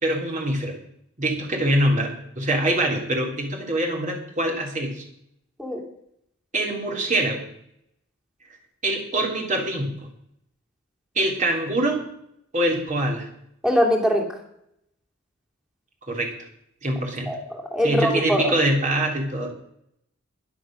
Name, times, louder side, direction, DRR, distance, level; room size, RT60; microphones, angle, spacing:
voice 1, 0.0-0.8 1.2-5.0 6.5-7.4 8.8-9.9 11.2-12.0 12.5-13.3 16.1-16.3 16.8-17.3 17.8-19.5, right 1 dB, 35° right, 1 dB, 3.4 m, -24 dB
voice 2, 13.6-14.2 17.3-18.5, equal, 5° right, 0 dB, 2.7 m, -22 dB
12.5 x 11.5 x 6.4 m, 0.74 s
head